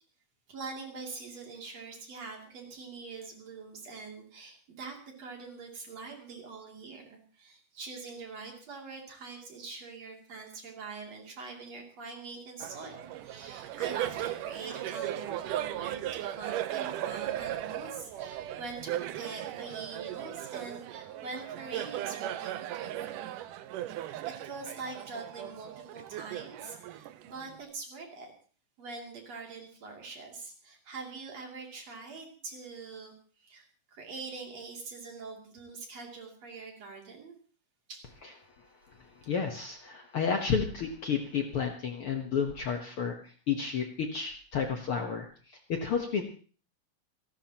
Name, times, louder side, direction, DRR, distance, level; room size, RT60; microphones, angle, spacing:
voice 1, 0.5-23.2 23.9-28.3 28.8-33.7 33.9-37.4 37.9-38.1, right 4 dB, 55° right, 1 dB, 3.9 m, -44 dB
Laughter, 12.6-27.6, right 12 dB, 80° right, 2.4 m, -37 dB
voice 2, 39.3-45.3 45.7-46.2, left 6 dB, 55° left, 4 dB, 1.6 m, -31 dB
28.0 x 12.0 x 3.0 m, 0.40 s
omnidirectional pair, 3.7 m